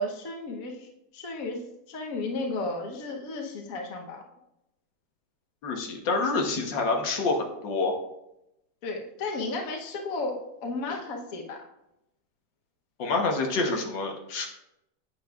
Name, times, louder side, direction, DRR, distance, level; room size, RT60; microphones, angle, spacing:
voice 1, 0.0-1.6 1.9-4.2 8.8-11.6, left 2 dB, 55° left, 2 dB, 1.4 m, -33 dB
voice 2, 5.6-7.9 13.0-14.5, left 3 dB, 90° left, 2 dB, 1.8 m, -27 dB
8.4 x 8.2 x 2.4 m, 0.85 s
omnidirectional pair, 1.9 m